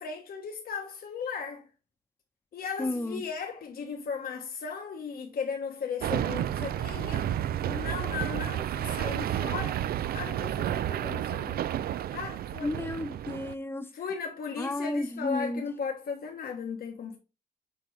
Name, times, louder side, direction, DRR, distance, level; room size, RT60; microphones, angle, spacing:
voice 1, 0.0-1.6 2.5-7.4 7.7-9.8 10.1-11.6 12.1-12.8 13.9-17.2, left 6 dB, 75° left, 1.1 m, -36 dB
voice 2, 2.8-3.2 12.6-13.9 14.6-15.6, left 2 dB, 15° left, 0.8 m, -32 dB
sound 1, 6.0-13.5, right 11 dB, 75° right, 0.4 m, -31 dB
6.7 x 4.5 x 3.1 m
cardioid pair, 50°, 16 cm